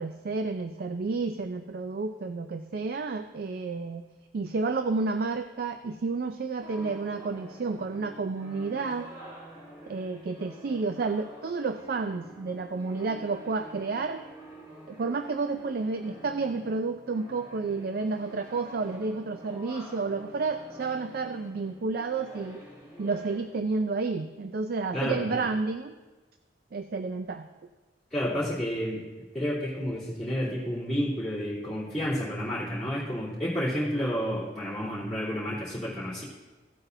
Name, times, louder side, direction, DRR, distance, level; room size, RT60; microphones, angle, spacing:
voice 1, 0.0-4.0 4.3-9.1 9.9-14.2 14.9-22.6 23.0-26.0 26.7-27.5, right 4 dB, 60° right, 8 dB, 0.4 m, -31 dB
sound 1, 6.6-23.4, right 1 dB, 25° right, 2.3 m, -48 dB
voice 2, 24.9-25.4 28.1-29.0 29.3-36.2, equal, ahead, -13 dB, 3.0 m, -30 dB
15.5 x 8.0 x 2.7 m, 1.2 s
head